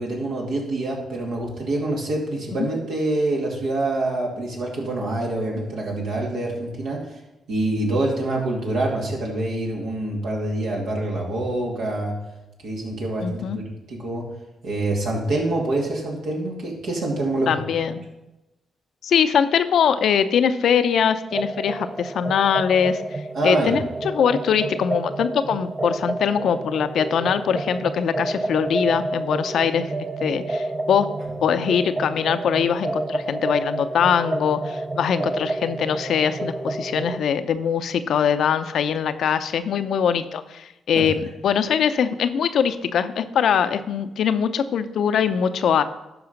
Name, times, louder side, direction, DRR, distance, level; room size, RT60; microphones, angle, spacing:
voice 1, 0.0-7.0 7.5-12.1 12.6-13.6 13.9-14.3 14.6-17.5 23.3-23.8 40.9-41.0, right 2 dB, 75° right, -2 dB, 2.5 m, -26 dB
voice 2, 13.2-13.6 17.5-18.0 19.0-29.9 30.2-31.1 31.4-45.8, left 7 dB, 70° left, 11 dB, 0.6 m, -22 dB
sound 1, 21.3-37.2, right 2 dB, 30° right, 0.6 m, -29 dB
12.0 x 4.8 x 5.2 m, 0.96 s
supercardioid pair, 55°, 0 cm